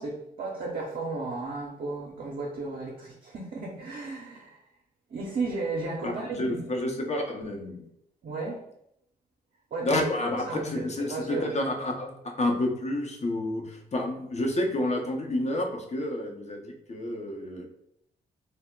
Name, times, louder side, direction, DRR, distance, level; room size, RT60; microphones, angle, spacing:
voice 1, 0.0-4.6 5.1-6.7 8.2-8.6 9.7-10.0 10.4-11.5, right 3 dB, 50° right, -3 dB, 0.7 m, -34 dB
voice 2, 6.0-7.8 9.8-17.7, left 1 dB, 35° left, 2 dB, 0.7 m, -30 dB
2.0 x 2.0 x 3.7 m, 0.76 s
hypercardioid pair, 40°, 19 cm